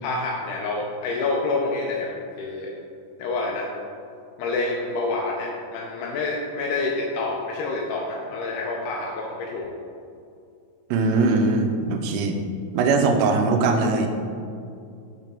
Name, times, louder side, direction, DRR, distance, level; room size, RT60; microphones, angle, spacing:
voice 1, 0.0-2.7 3.2-3.7 4.4-9.7, left 3 dB, 80° left, -1 dB, 2.5 m, -27 dB
voice 2, 10.9-12.4 12.7-14.1, right 3 dB, 85° right, 5 dB, 2.8 m, -21 dB
6.5 x 6.0 x 3.4 m, 2.4 s
omnidirectional pair, 4.9 m